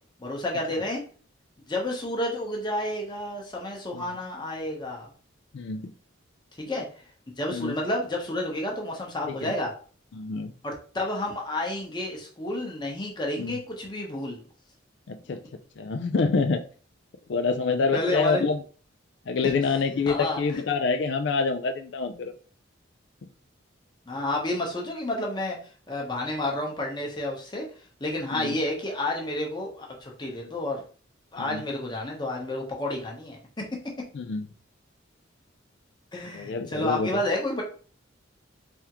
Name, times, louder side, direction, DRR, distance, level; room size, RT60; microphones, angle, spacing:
voice 1, 0.2-1.0 1.7-5.1 6.6-7.0 7.4-9.7 10.6-14.4 17.9-18.4 19.4-19.5 20.1-20.4 24.1-25.6 25.9-27.7 28.0-30.8 31.3-33.6 36.1-37.6, left 1 dB, 20° left, -1 dB, 0.9 m, -30 dB
voice 2, 5.5-5.9 7.5-7.7 9.3-9.5 10.1-10.5 13.4-13.6 15.1-15.4 15.8-16.6 17.3-18.6 19.3-22.3 28.3-28.6 31.4-31.6 34.1-34.5 36.3-37.2, left 4 dB, 60° left, 8 dB, 0.4 m, -27 dB
3.5 x 3.5 x 2.9 m, 0.41 s
head